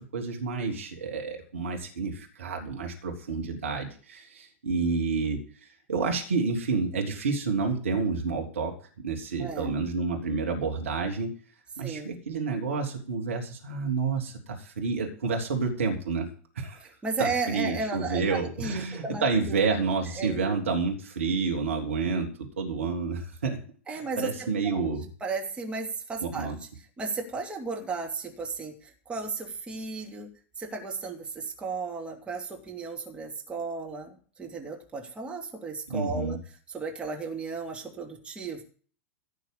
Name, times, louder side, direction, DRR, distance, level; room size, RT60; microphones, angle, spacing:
voice 1, 0.0-5.4 5.9-8.7 9.0-11.3 11.8-16.3 16.5-16.8 17.2-23.6 23.9-25.0 26.2-26.6 35.9-36.4, right 4 dB, 70° right, 1 dB, 3.2 m, -29 dB
voice 2, 9.4-9.8 11.8-12.1 16.8-19.7 20.2-20.6 23.9-24.9 25.2-26.7 27.0-30.3 30.6-36.4 36.7-38.6, right 4 dB, 15° right, 1 dB, 2.7 m, -35 dB
16.0 x 6.5 x 8.5 m, 0.42 s
figure-of-eight pair, 95°, 7 cm